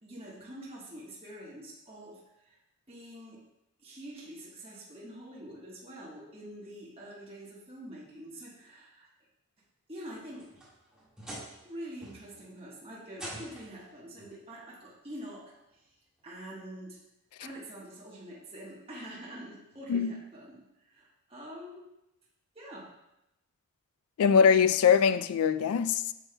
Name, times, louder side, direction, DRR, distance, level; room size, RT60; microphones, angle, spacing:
voice 1, 0.0-2.6 2.9-3.4 3.8-9.1 9.9-10.5 11.6-15.8 16.2-17.0 17.4-21.8 22.5-22.9, right 1 dB, 25° right, 1.2 m, -45 dB
sound 1, 10.1-11.7 12.0-12.5 13.1-13.8 15.0-15.1 15.7-15.8 17.4-17.5, right 1 dB, 5° right, 1.7 m, -45 dB
voice 2, 24.2-26.1, left 7 dB, 90° left, 0.3 m, -22 dB
8.7 x 6.2 x 2.2 m
head